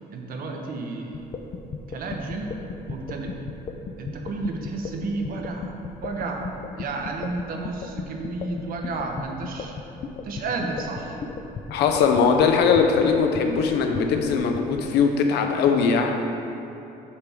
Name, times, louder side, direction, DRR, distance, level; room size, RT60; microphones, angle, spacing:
voice 1, 0.1-1.2 1.9-2.6 2.9-3.3 4.0-5.7 6.0-6.5 6.8-9.8 10.2-11.2, right 3 dB, 60° right, 2 dB, 1.0 m, -32 dB
sound 1, 1.1-14.9, left 5 dB, 35° left, 0.6 m, -34 dB
voice 2, 11.7-16.2, left 5 dB, 80° left, 4 dB, 0.8 m, -20 dB
8.4 x 3.5 x 6.0 m, 2.9 s
cardioid pair, 110°, 17 cm